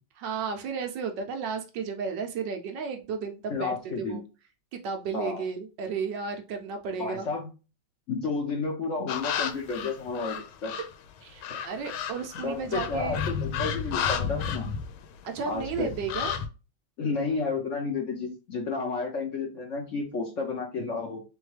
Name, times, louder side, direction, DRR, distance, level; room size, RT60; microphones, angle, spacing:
voice 1, 0.2-4.2 4.7-7.3 10.7-10.8 11.2-13.2 15.2-16.3, right 5 dB, 70° right, 5 dB, 1.2 m, -33 dB
voice 2, 3.5-4.2 5.1-5.4 7.0-7.5 8.1-10.7 11.5-11.6 12.4-14.7 15.5-15.9 17.0-21.2, left 4 dB, 65° left, 1 dB, 0.7 m, -31 dB
sound 1, 9.1-11.0 11.4-15.3 15.5-16.5, left 7 dB, 80° left, 1.4 m, -32 dB
3.6 x 3.5 x 3.2 m, 0.32 s
omnidirectional pair, 2.3 m